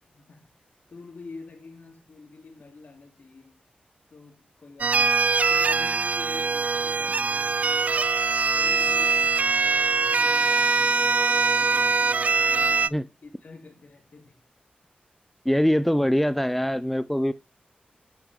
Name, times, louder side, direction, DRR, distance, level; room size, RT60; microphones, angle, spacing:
voice 1, 0.1-0.5 0.9-3.6 4.1-5.2 5.5-8.1 8.4-14.4, left 3 dB, 60° left, 3.1 m, -47 dB
sound 1, 4.8-12.9, right 4 dB, 50° right, 0.4 m, -22 dB
voice 2, 15.4-17.3, equal, 5° left, 0.6 m, -23 dB
9.1 x 8.5 x 3.6 m
wide cardioid pair, 85°, 3 cm